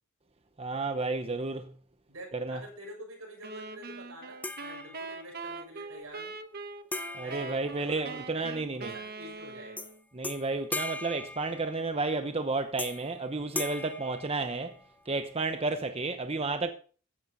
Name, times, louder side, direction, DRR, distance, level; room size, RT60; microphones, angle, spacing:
voice 1, 0.6-1.7 2.3-2.6 7.1-8.9 10.1-14.7 15.1-16.7, right 3 dB, 30° right, 0.9 m, -32 dB
voice 2, 2.1-6.4 7.2-9.9, right 1 dB, 80° right, 7.2 m, -47 dB
sound 1, 3.4-10.0, right 3 dB, 45° right, 1.2 m, -42 dB
sound 2, 4.4-5.4 6.9-8.5 9.8-9.9 10.2-12.1 12.8-13.2 13.5-15.0, left 2 dB, 10° left, 0.6 m, -39 dB
15.0 x 11.0 x 4.1 m
head